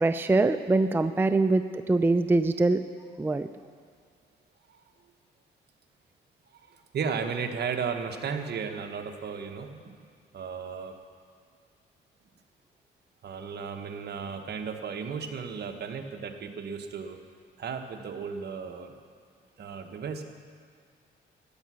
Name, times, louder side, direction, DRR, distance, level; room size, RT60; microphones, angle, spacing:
voice 1, 0.0-2.8 3.2-3.5, right 2 dB, 10° right, 10 dB, 0.4 m, -23 dB
voice 2, 6.7-10.0 10.3-11.0 13.2-17.2 17.6-19.0 19.6-20.2, right 6 dB, 55° right, 5 dB, 1.2 m, -35 dB
14.0 x 9.3 x 6.3 m, 2.2 s
cardioid pair, 90°, 20 cm